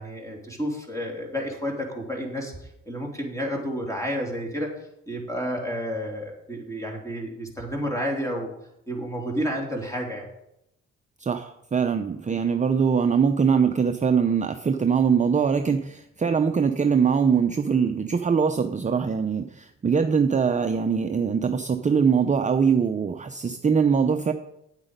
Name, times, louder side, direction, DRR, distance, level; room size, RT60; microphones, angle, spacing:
voice 1, 0.0-4.7 5.1-8.5 8.9-10.3, equal, 10° left, 0 dB, 3.0 m, -30 dB
voice 2, 11.2-24.3, right 6 dB, 25° right, 6 dB, 0.6 m, -22 dB
9.0 x 8.2 x 5.2 m, 0.82 s
cardioid pair, 90°, 30 cm